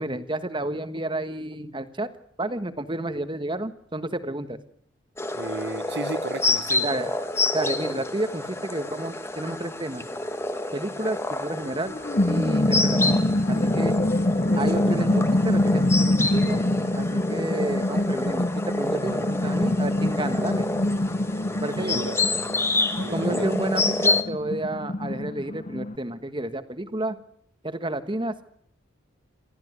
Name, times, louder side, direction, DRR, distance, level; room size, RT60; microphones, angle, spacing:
voice 1, 0.0-2.1 2.4-4.6 6.8-7.1 7.5-10.0 10.7-11.9 12.3-13.9 14.6-16.6 16.9-18.5 18.8-20.7 21.6-22.0 23.1-27.2 27.6-28.5, right 1 dB, 25° right, 11 dB, 1.4 m, -30 dB
sound 1, 5.2-24.2, left 2 dB, 10° left, 1.4 m, -28 dB
voice 2, 5.3-6.9 13.5-13.7 14.5-14.6 21.8-22.2 22.5-22.6 23.0-23.5, right 3 dB, 55° right, 14 dB, 1.3 m, -34 dB
sound 2, 11.7-25.9, left 1 dB, 35° left, 0.9 m, -25 dB
27.5 x 13.5 x 9.5 m, 0.66 s
head